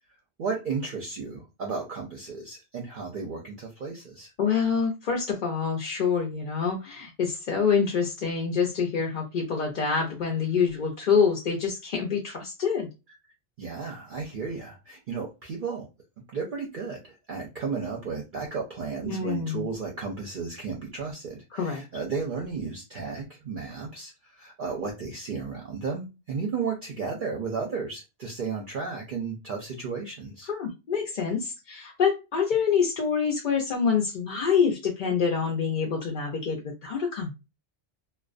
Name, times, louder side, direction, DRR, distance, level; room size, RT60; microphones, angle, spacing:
voice 1, 0.4-4.3 13.6-15.9 16.3-30.5, right 5 dB, 55° right, 0 dB, 0.6 m, -34 dB
voice 2, 4.4-12.9 19.1-19.6 21.5-21.8 30.5-37.4, left 6 dB, 55° left, 1 dB, 0.5 m, -26 dB
2.4 x 2.1 x 2.4 m, 0.25 s
omnidirectional pair, 1.2 m